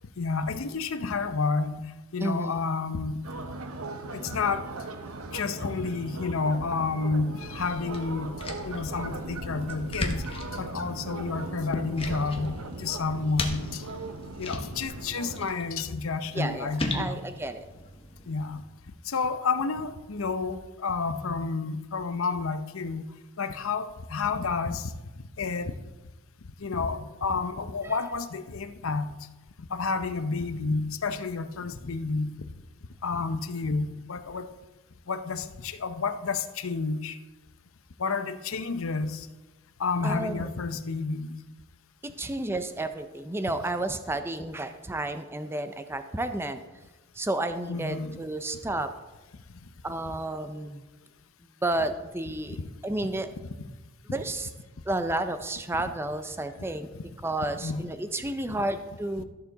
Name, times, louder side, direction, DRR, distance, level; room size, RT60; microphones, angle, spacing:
voice 1, 0.2-1.9 2.1-3.2 4.1-4.6 5.3-8.4 8.6-10.2 10.5-13.8 14.4-17.2 18.3-18.6 19.1-23.0 23.4-24.9 25.4-25.7 26.6-29.1 29.6-32.3 33.0-34.5 35.1-37.2 38.0-39.3 39.8-41.3 47.7-48.2 56.9-57.0 57.6-57.8 58.5-58.6 59.2-59.3, left 4 dB, 70° left, 10 dB, 0.7 m, -30 dB
voice 2, 2.2-2.7 16.3-17.7 27.8-28.0 40.0-40.5 42.0-46.6 47.1-48.9 49.8-50.8 51.6-53.3 54.1-54.5 54.9-56.9 57.2-59.2, right 2 dB, 10° right, 9 dB, 0.5 m, -31 dB
sound 1, 3.2-15.5, right 3 dB, 80° right, 0.8 m, -39 dB
sound 2, 7.4-18.6, left 2 dB, 25° left, 1.0 m, -38 dB
13.5 x 6.7 x 4.0 m, 1.1 s
head